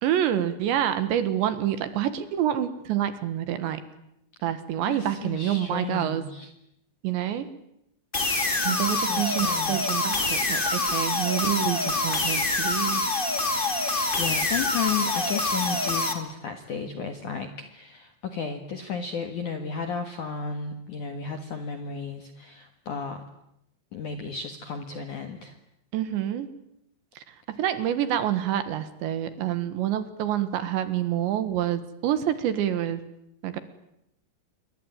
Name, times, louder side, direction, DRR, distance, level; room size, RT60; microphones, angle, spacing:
voice 1, 0.0-3.8 4.4-6.2 7.0-7.5 8.6-13.0 25.9-26.5 27.2-33.0 33.4-33.6, right 11 dB, 70° right, 12 dB, 3.5 m, -27 dB
voice 2, 4.9-6.5 8.7-10.0 13.7-23.2 23.9-25.6, left 5 dB, 60° left, 7 dB, 2.1 m, -34 dB
sound 1, 8.1-16.1, left 2 dB, 35° left, 0.7 m, -26 dB
28.0 x 23.0 x 9.2 m, 0.80 s
omnidirectional pair, 5.9 m